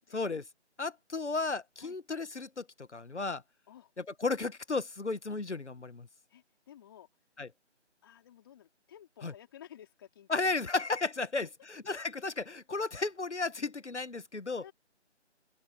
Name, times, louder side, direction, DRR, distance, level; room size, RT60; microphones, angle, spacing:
voice 1, 0.1-0.4 0.8-3.4 4.2-6.1 7.4-7.5 9.2-9.3 10.3-14.6, left 3 dB, 70° left, 1.4 m, -34 dB
voice 2, 6.3-7.1 8.0-10.7 11.4-11.5 14.6-14.7, left 10 dB, 20° left, 3.9 m, -54 dB
open air
figure-of-eight pair, 155°, 36 cm